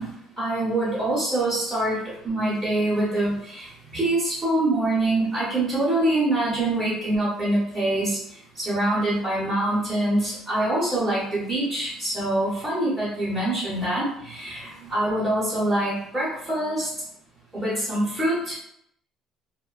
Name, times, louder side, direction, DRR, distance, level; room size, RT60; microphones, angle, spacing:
voice 1, 0.0-2.0 2.2-8.2 8.5-16.9 17.5-18.5, right 1 dB, 10° right, -9 dB, 0.6 m, -25 dB
2.6 x 2.1 x 2.3 m, 0.73 s
cardioid pair, 175°, 0 cm